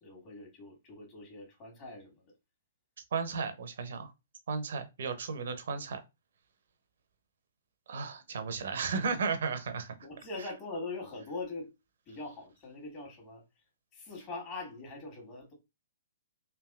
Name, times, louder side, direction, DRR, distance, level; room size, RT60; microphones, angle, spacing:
voice 1, 0.0-2.3 10.0-11.7 12.1-13.4 13.9-15.5, left 3 dB, 30° left, 1.6 m, -42 dB
voice 2, 3.1-4.1 4.5-6.0 7.9-10.0, right 5 dB, 60° right, 0.6 m, -34 dB
3.4 x 2.6 x 2.3 m
figure-of-eight pair, 120°, 0 cm